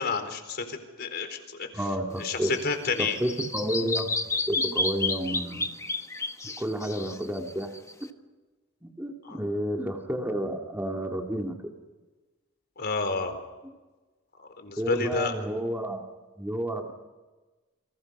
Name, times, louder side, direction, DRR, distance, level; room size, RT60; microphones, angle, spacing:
voice 1, 0.0-1.7 2.2-3.2 9.2-9.4 12.8-13.4 14.4-15.3, left 4 dB, 50° left, 7 dB, 4.3 m, -30 dB
voice 2, 1.7-2.6 3.0-4.2 4.5-5.7 6.4-7.7 8.8-11.7 14.8-16.0 16.4-16.9, right 1 dB, 10° right, 2 dB, 2.4 m, -31 dB
Bird vocalization bird call bird song, 2.2-8.1, left 3 dB, 15° left, 1.3 m, -31 dB
29.5 x 26.5 x 5.5 m, 1.2 s
head